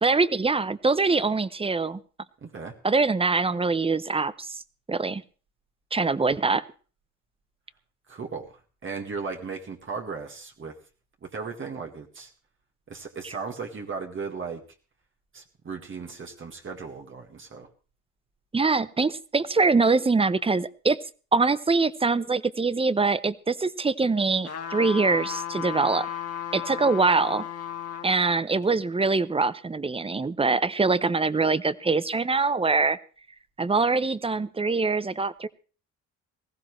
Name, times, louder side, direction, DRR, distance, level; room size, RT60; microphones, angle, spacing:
voice 1, 0.0-2.0 2.8-4.6 4.9-5.2 5.9-6.6 13.2-13.4 18.5-21.0 21.3-26.1 26.5-27.5 28.0-33.0 33.6-35.5, right 4 dB, 20° right, 16 dB, 0.7 m, -23 dB
voice 2, 2.4-2.7 8.1-8.5 8.8-10.8 11.2-12.3 12.9-14.6 15.3-17.7, right 5 dB, 40° right, 2 dB, 1.9 m, -36 dB
sound 1, 24.4-28.1 28.6-28.7, left 10 dB, 55° left, 1.9 m, -34 dB
19.5 x 15.0 x 3.2 m, 0.37 s
cardioid pair, 90°, 30 cm